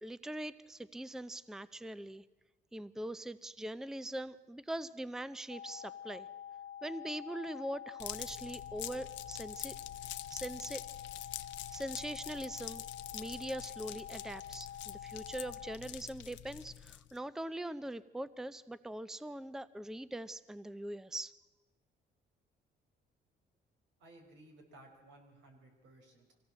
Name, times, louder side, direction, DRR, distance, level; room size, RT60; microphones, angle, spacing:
voice 1, 0.0-2.2 2.7-6.3 6.8-9.8 10.3-10.8 11.7-12.8 13.1-21.3, right 1 dB, ahead, 16 dB, 0.6 m, -42 dB
sound 1, 5.5-15.8, left 9 dB, 45° left, 0.7 m, -47 dB
sound 2, 8.0-17.2, left 13 dB, 80° left, 0.8 m, -46 dB
voice 2, 24.0-26.4, right 1 dB, 85° right, 3 dB, 4.8 m, -58 dB
23.5 x 17.5 x 7.5 m, 1.2 s
cardioid pair, 95°, 19 cm